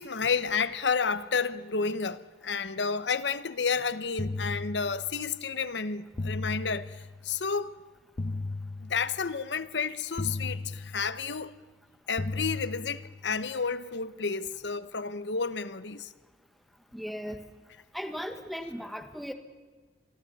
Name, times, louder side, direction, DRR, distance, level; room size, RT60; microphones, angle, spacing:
voice 1, 0.0-7.7 8.8-11.5 12.1-16.1, left 5 dB, 80° left, 1.0 m, -31 dB
sound 1, 4.2-5.4 6.2-7.4 8.2-9.4 10.2-11.4 12.2-13.4, left 2 dB, 35° left, 0.6 m, -36 dB
voice 2, 16.9-17.4 17.9-19.3, equal, ahead, 1.5 m, -37 dB
27.0 x 23.5 x 4.2 m
head